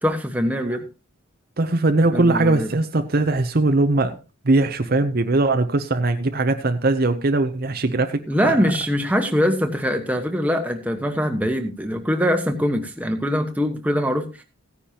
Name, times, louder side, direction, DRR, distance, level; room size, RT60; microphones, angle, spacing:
voice 1, 0.0-0.8 2.1-2.7 8.3-14.4, equal, 5° right, 4 dB, 1.3 m, -23 dB
voice 2, 1.6-4.2 4.4-8.6, right 2 dB, 45° right, 8 dB, 0.7 m, -20 dB
15.5 x 10.0 x 2.9 m, 0.31 s
head